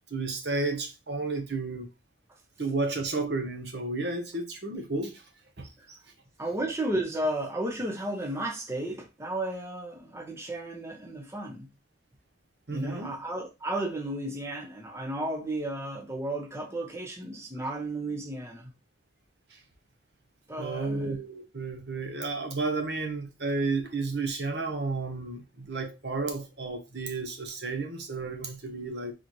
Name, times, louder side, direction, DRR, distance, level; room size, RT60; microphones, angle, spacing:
voice 1, 0.1-1.9 2.6-5.2 5.6-5.7 12.7-13.1 19.5-19.6 20.6-29.1, right 3 dB, 60° right, 0.9 m, -32 dB
voice 2, 6.4-11.7 12.7-18.7 20.5-21.2, right 1 dB, 15° right, 0.8 m, -33 dB
4.0 x 3.9 x 3.1 m
head